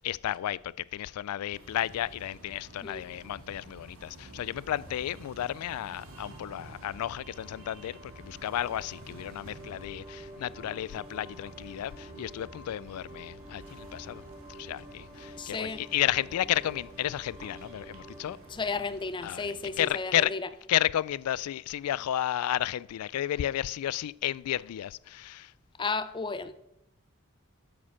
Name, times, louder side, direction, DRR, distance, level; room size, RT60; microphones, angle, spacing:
voice 1, 0.0-14.2 14.6-18.4 19.2-19.5 19.8-20.3 20.7-25.5, left 12 dB, 85° left, 0.3 m, -32 dB
sound 1, 1.5-19.9, right 2 dB, 70° right, 1.8 m, -50 dB
sound 2, 6.0-20.0, equal, 5° right, 1.8 m, -50 dB
voice 2, 15.4-15.9 18.5-20.5 25.8-26.5, left 4 dB, 20° left, 0.5 m, -33 dB
8.7 x 7.5 x 5.7 m
head